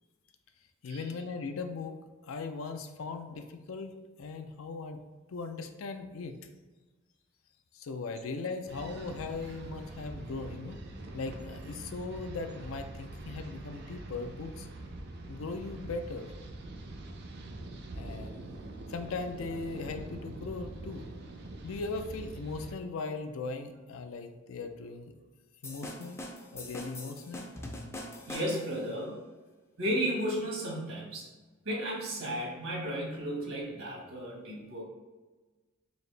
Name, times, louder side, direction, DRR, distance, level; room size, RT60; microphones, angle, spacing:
voice 1, 0.8-2.0 2.2-3.9 4.2-5.0 5.3-6.4 7.7-10.8 11.1-14.7 15.3-16.3 18.0-18.6 18.9-21.1 21.6-25.1 25.6-26.2 26.5-27.5, left 3 dB, 75° left, 7 dB, 0.4 m, -39 dB
sound 1, 8.7-22.8, right 2 dB, 55° right, 0.5 m, -44 dB
sound 2, 25.6-28.9, left 1 dB, 15° left, 0.4 m, -42 dB
voice 2, 28.3-29.2 29.8-31.3 31.6-34.8, equal, 80° right, -3 dB, 1.3 m, -34 dB
4.2 x 2.8 x 3.2 m, 1.3 s
head